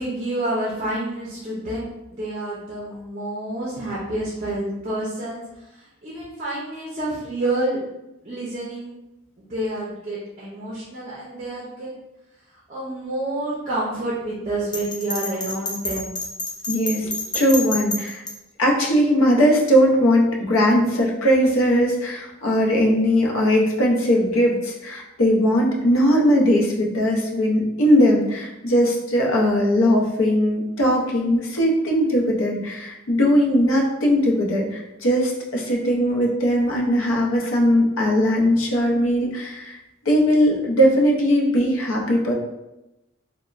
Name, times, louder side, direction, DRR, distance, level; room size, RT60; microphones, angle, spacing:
voice 1, 0.0-5.4 5.7-7.8 8.2-8.9 9.4-11.9 12.7-16.2 17.0-17.1, right 1 dB, 35° right, -5 dB, 0.5 m, -28 dB
Bell, 14.7-18.3, left 2 dB, 20° left, 0.4 m, -28 dB
voice 2, 16.7-17.1 17.3-18.2 18.6-39.8 40.0-42.3, equal, 80° left, -1 dB, 0.6 m, -19 dB
3.0 x 2.1 x 2.4 m, 0.95 s
head